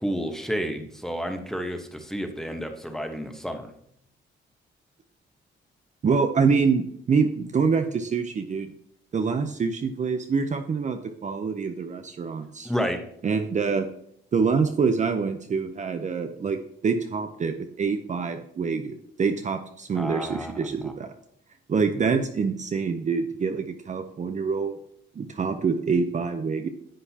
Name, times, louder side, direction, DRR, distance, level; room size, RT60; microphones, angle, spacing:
voice 1, 0.0-3.7 12.6-13.0 19.9-20.5 20.8-20.9, equal, ahead, 5 dB, 1.2 m, -30 dB
voice 2, 6.0-8.7 9.1-12.7 13.2-13.9 14.3-21.1 21.7-24.8 25.2-26.7, right 5 dB, 35° right, 6 dB, 0.7 m, -26 dB
10.0 x 7.7 x 2.9 m, 0.71 s
cardioid pair, 90°, 20 cm